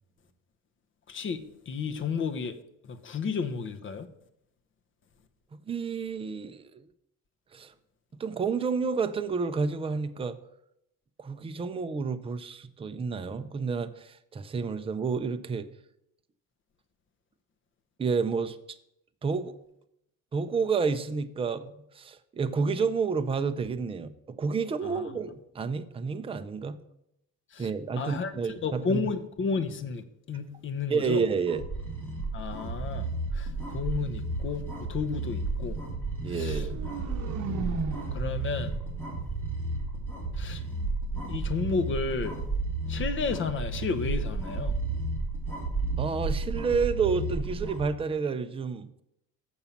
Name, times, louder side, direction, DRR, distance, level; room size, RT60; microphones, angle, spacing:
voice 1, 1.1-2.6 2.8-4.1 24.8-25.1 27.5-27.7 28.0-28.3 28.6-31.2 32.3-35.8 36.3-36.7 37.4-37.8 38.1-38.8 40.4-40.6 41.3-42.4 42.9-44.8, left 5 dB, 35° left, 0.8 m, -32 dB
voice 2, 5.7-6.7 7.5-7.7 8.2-10.4 11.2-15.7 18.0-18.6 19.2-19.5 20.3-26.8 27.6-29.0 30.9-31.6 36.2-36.9 46.0-48.9, right 5 dB, 15° right, 0.4 m, -30 dB
sound 1, 31.5-47.9, right 3 dB, 5° left, 2.8 m, -32 dB
sound 2, 36.4-40.4, right 5 dB, 50° right, 1.0 m, -38 dB
7.1 x 5.4 x 7.1 m
cardioid pair, 145°, 36 cm